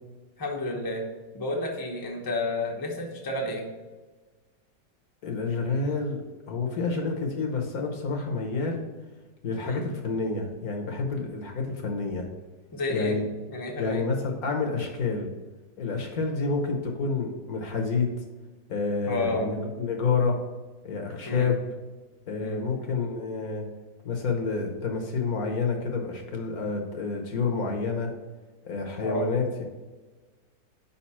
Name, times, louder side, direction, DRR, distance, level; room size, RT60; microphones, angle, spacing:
voice 1, 0.4-1.0 1.3-3.7 9.6-9.8 12.7-13.1 13.5-14.0 19.1-19.5 21.3-21.5 22.4-22.6 29.0-29.2, left 2 dB, 20° left, -1 dB, 0.7 m, -30 dB
voice 2, 5.2-6.2 6.5-8.8 9.4-12.2 12.9-13.2 13.8-15.3 15.8-18.1 18.7-20.4 20.8-21.6 22.3-23.6 24.0-28.1 28.6-29.6, left 4 dB, 60° left, 2 dB, 1.3 m, -28 dB
5.2 x 4.2 x 5.6 m, 1.2 s
omnidirectional pair, 1.9 m